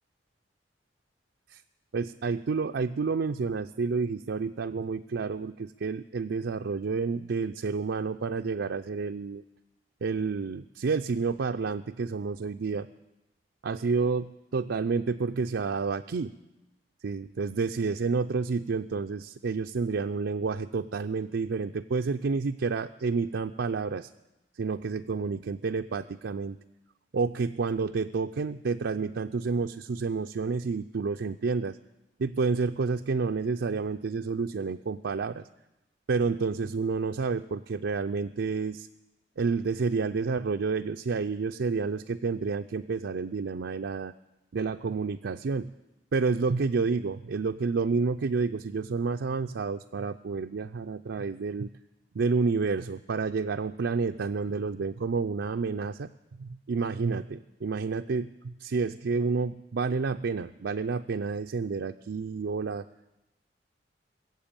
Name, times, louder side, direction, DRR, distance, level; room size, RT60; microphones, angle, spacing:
voice 1, 1.9-9.4 10.0-12.9 13.6-16.3 17.0-24.1 24.6-26.6 27.1-31.8 32.2-35.4 36.1-38.9 39.4-44.1 44.5-45.7 46.1-51.7 52.1-56.1 56.4-62.9, right 4 dB, 75° right, 6 dB, 0.4 m, -29 dB
21.0 x 7.7 x 8.8 m, 0.94 s
head